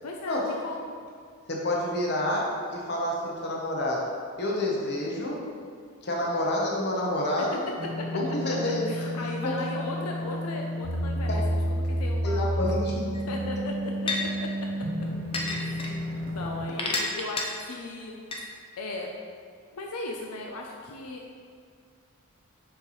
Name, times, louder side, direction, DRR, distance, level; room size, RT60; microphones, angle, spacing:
voice 1, 0.0-0.9 7.4-7.5 8.4-11.4 11.7-12.6 13.3-14.7 15.6-15.8 16.3-18.2 18.8-19.1 19.7-21.2, left 2 dB, 85° left, 0 dB, 0.6 m, -37 dB
voice 2, 1.5-4.1 4.4-5.4 6.0-7.6 8.1-9.1 9.4-9.7 11.3-11.4 12.2-13.0, left 1 dB, 50° left, -3 dB, 0.9 m, -28 dB
sound 1, 7.8-16.6, equal, 55° right, 0.9 m, -31 dB
sound 2, 13.1-13.2 14.1-14.2 15.3-15.9 16.8-17.4 18.3-18.4, left 3 dB, 25° left, 0.6 m, -28 dB
6.4 x 5.6 x 3.1 m, 2.1 s
head